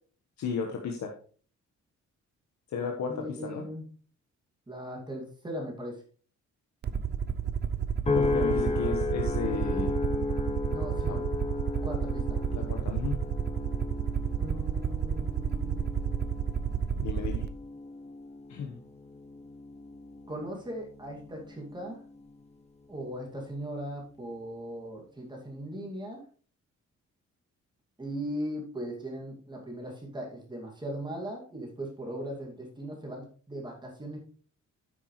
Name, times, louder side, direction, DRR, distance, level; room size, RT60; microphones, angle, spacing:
voice 1, 0.4-1.1 2.7-3.7 8.1-9.9 11.1-11.2 12.5-13.2 17.0-17.5 18.5-18.8, left 5 dB, 70° left, 2 dB, 1.4 m, -34 dB
voice 2, 3.1-3.8 4.7-6.0 10.7-11.2 11.8-12.4 14.4-15.9 20.3-22.0 22.9-26.3 28.0-34.2, equal, 15° right, -1 dB, 2.4 m, -38 dB
Aircraft, 6.8-17.5, right 7 dB, 35° right, 0.5 m, -31 dB
sound 1, 8.1-22.5 23.1-23.5, left 3 dB, 20° left, 0.9 m, -35 dB
10.0 x 8.4 x 3.3 m, 0.42 s
wide cardioid pair, 175°, 29 cm